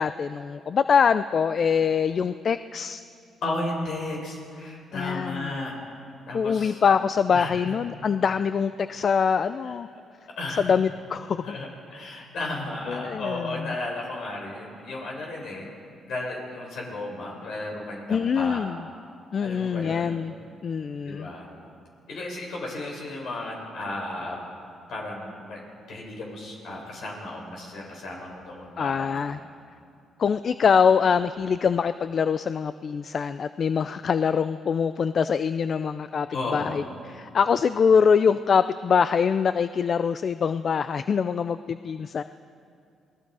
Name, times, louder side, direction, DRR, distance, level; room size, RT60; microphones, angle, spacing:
voice 1, 0.0-3.0 4.9-5.5 6.3-9.9 10.6-11.6 12.9-13.7 18.1-18.8 19.3-20.3 20.6-21.3 28.8-29.4 30.2-36.3 36.5-42.2, left 6 dB, 50° left, 13 dB, 0.5 m, -24 dB
voice 2, 3.4-5.8 6.3-6.8 7.3-7.7 9.6-9.7 10.4-10.7 11.4-15.7 16.0-18.6 19.4-20.2 21.0-21.5 22.1-24.4 24.9-25.6 25.9-29.3 36.3-36.9, left 2 dB, 70° left, -1 dB, 6.4 m, -34 dB
28.5 x 20.0 x 4.9 m, 2.4 s
cardioid pair, 90°, 0 cm